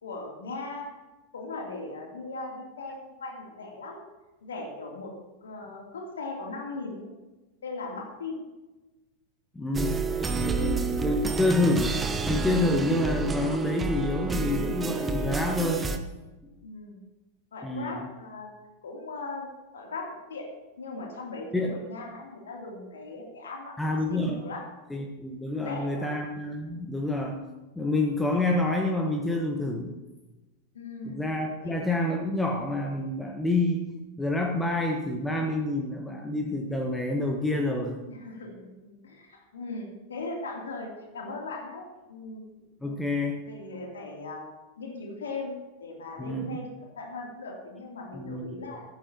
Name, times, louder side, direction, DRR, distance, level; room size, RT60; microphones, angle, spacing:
voice 1, 0.0-0.9 1.3-4.0 4.4-5.1 5.4-7.1 7.6-8.4 10.1-10.9 16.6-17.0 17.5-18.5 18.8-20.5 20.8-24.6 25.4-26.1 30.7-31.2 31.6-31.9 38.1-42.4 43.4-44.4 44.8-46.7 47.0-48.8, left 3 dB, 65° left, 0 dB, 2.9 m, -39 dB
voice 2, 9.5-12.0 12.3-15.8 17.6-18.1 21.5-21.7 23.8-24.4 24.9-27.4 27.7-29.9 31.0-38.0 42.8-43.4 46.2-46.6 48.1-48.5, left 2 dB, 5° left, 2 dB, 1.2 m, -28 dB
sound 1, 9.7-16.0, right 4 dB, 15° right, 1.0 m, -29 dB
15.0 x 14.0 x 2.9 m, 1.1 s
figure-of-eight pair, 90°, 0 cm